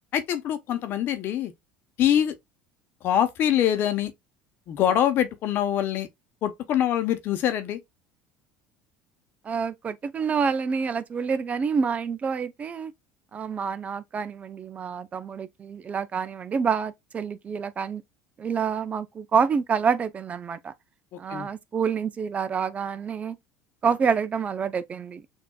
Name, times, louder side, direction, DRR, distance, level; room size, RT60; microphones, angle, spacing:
voice 1, 0.1-1.5 2.0-2.4 3.0-4.1 4.7-6.1 6.4-7.8 21.1-21.5, left 10 dB, 55° left, 0.9 m, -24 dB
voice 2, 9.4-12.9 13.3-18.0 18.4-20.7 21.2-23.4 23.8-25.2, right 6 dB, 35° right, 0.4 m, -27 dB
6.4 x 2.6 x 2.3 m
supercardioid pair, 90°, 4 cm